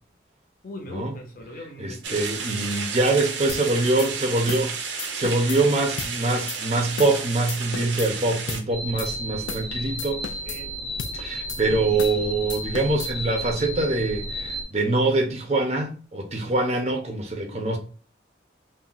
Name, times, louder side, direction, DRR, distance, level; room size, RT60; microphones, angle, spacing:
voice 1, 0.6-2.3 10.5-10.8, left 1 dB, 45° left, 0.7 m, -39 dB
voice 2, 1.8-10.2 11.1-17.8, right 2 dB, 35° right, 0.5 m, -24 dB
sound 1, 2.0-8.6, right 5 dB, 85° right, 0.6 m, -32 dB
sound 2, 3.5-3.7 4.0-4.1 4.5-4.7 5.0-5.6 6.0-6.1 6.5-6.6 7.0-7.2 7.5-8.1 8.5-8.7 9.0-9.1 9.5-9.7 10.0-10.6 11.0-11.2 11.5-11.6 12.0-12.2 12.5-13.1, left 7 dB, 85° left, 0.3 m, -35 dB
sound 3, 8.7-14.6, right 1 dB, ahead, 0.7 m, -33 dB
2.4 x 2.1 x 3.8 m
head